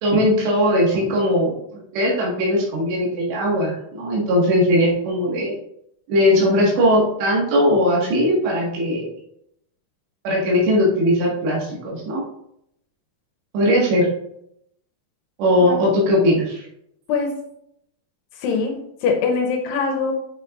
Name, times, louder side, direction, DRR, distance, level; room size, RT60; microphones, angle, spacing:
voice 1, 0.0-5.5 6.1-9.1 10.2-12.2 13.5-14.1 15.4-16.7, equal, 85° right, -4 dB, 4.1 m, -19 dB
voice 2, 17.1-17.4 18.4-20.1, left 4 dB, 80° left, 2 dB, 3.0 m, -23 dB
9.2 x 6.5 x 2.6 m, 0.75 s
omnidirectional pair, 4.8 m